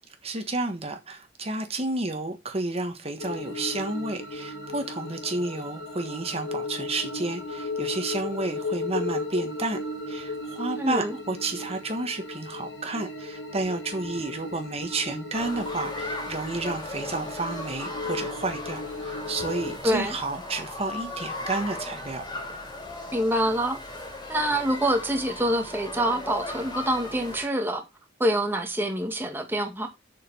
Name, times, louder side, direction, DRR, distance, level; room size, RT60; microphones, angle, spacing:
voice 1, 0.2-9.8 10.1-22.2, right 2 dB, 35° right, 1.4 m, -31 dB
sound 1, 3.2-19.8, left 2 dB, 90° left, 2.3 m, -35 dB
voice 2, 10.8-11.2 19.8-20.1 23.1-23.8 24.3-27.8 28.2-29.9, right 1 dB, 10° right, 1.6 m, -26 dB
sound 2, 15.3-27.5, left 2 dB, 25° left, 3.0 m, -37 dB
7.3 x 6.8 x 5.5 m
head